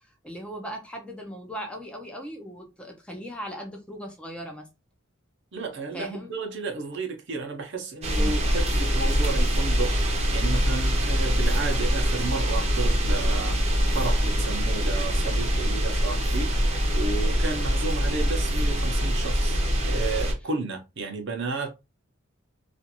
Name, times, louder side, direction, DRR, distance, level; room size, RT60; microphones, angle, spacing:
voice 1, 0.2-4.7 5.9-6.3 8.2-8.3, equal, 5° left, 0.5 m, -38 dB
voice 2, 5.5-13.6 13.9-21.7, right 3 dB, 60° right, 0.7 m, -32 dB
sound 1, 8.0-20.3, equal, 30° right, 0.7 m, -24 dB
2.5 x 2.5 x 2.8 m
head